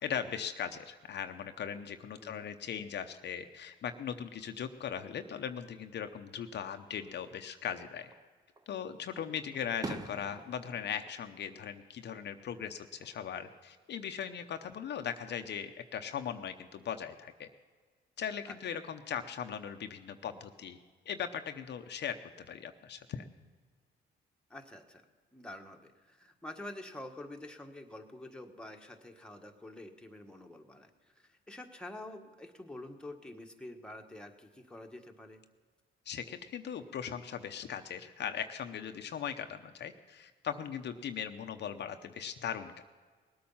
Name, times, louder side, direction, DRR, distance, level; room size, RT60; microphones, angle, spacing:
voice 1, 0.0-8.1 8.7-17.5 18.2-20.8 21.1-23.3 36.1-42.8, left 8 dB, 60° left, 7 dB, 0.8 m, -39 dB
Fireworks, 8.0-8.7 9.2-12.3 12.6-13.2 14.7-15.5, right 2 dB, 20° right, 0.8 m, -47 dB
voice 2, 24.5-25.0 25.3-35.4, left 1 dB, 5° left, 3 dB, 1.4 m, -47 dB
19.5 x 8.7 x 5.6 m, 1.5 s
cardioid pair, 90°, 20 cm